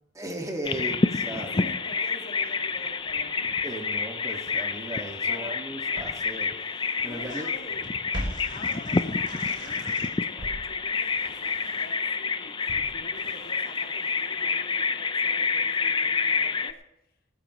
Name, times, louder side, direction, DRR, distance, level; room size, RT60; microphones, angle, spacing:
voice 1, 0.1-1.5 3.6-6.6 7.0-7.5 8.3-8.4, right 1 dB, 20° right, 2 dB, 1.8 m, -36 dB
Bird vocalization bird call bird song, 0.6-16.7, left 4 dB, 25° left, 0.5 m, -28 dB
voice 2, 1.3-3.6 5.3-5.7 7.0-8.0 8.5-16.8, left 1 dB, 55° left, 3 dB, 2.0 m, -46 dB
sound 1, 2.3-4.2 4.5-10.1, right 3 dB, 45° right, 2.5 m, -51 dB
Walk footsteps, 5.2-5.3 6.0-7.4 7.7-10.0 10.4-14.4 14.7-14.8, equal, 70° right, 3.2 m, -41 dB
19.5 x 14.0 x 3.0 m, 0.83 s
head